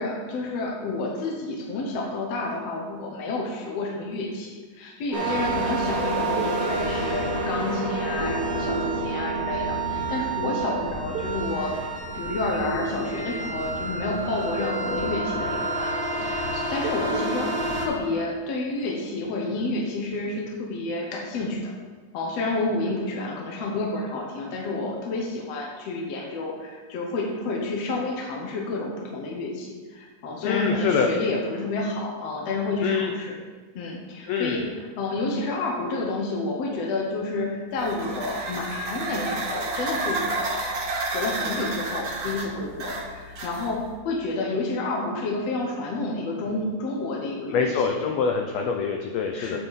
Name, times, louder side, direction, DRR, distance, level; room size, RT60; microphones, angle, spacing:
voice 1, 0.0-11.7 12.1-17.5 17.8-21.7 22.1-33.4 33.8-40.7 41.1-48.0 49.3-49.6, left 2 dB, 65° left, -1 dB, 1.8 m, -30 dB
sound 1, 5.1-17.9, right 2 dB, 35° right, 2.1 m, -28 dB
voice 2, 30.4-31.1 32.8-33.1 34.3-34.7 47.5-49.6, left 6 dB, 90° left, 3 dB, 1.5 m, -25 dB
sound 2, 37.7-43.9, right 2 dB, 60° right, 1.2 m, -31 dB
8.7 x 7.7 x 4.1 m, 1.4 s
omnidirectional pair, 3.8 m